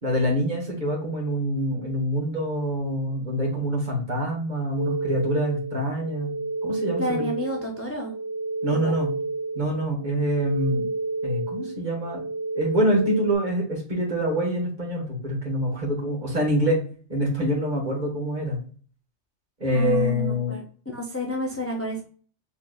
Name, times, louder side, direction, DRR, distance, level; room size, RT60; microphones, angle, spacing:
voice 1, 0.0-6.3 6.6-7.3 8.6-9.1 9.5-10.9 11.2-12.3 12.5-16.8 17.1-18.6 19.6-20.6, equal, 35° right, -3 dB, 2.0 m, -25 dB
sound 1, 4.8-13.4, right 3 dB, 30° left, 1.0 m, -30 dB
voice 2, 7.0-8.1 8.8-8.9 19.7-22.0, equal, 15° left, 1 dB, 0.5 m, -31 dB
4.6 x 3.6 x 2.4 m, 0.42 s
omnidirectional pair, 1.3 m